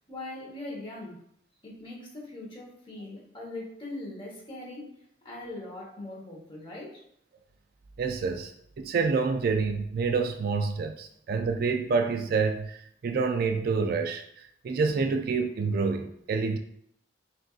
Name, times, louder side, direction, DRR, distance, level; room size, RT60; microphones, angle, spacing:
voice 1, 0.1-1.2 1.6-4.9 5.2-7.0, left 2 dB, 30° left, -4 dB, 1.2 m, -41 dB
voice 2, 8.0-8.5 8.8-16.6, right 4 dB, 55° right, 6 dB, 0.3 m, -28 dB
5.9 x 2.5 x 2.4 m, 0.70 s
head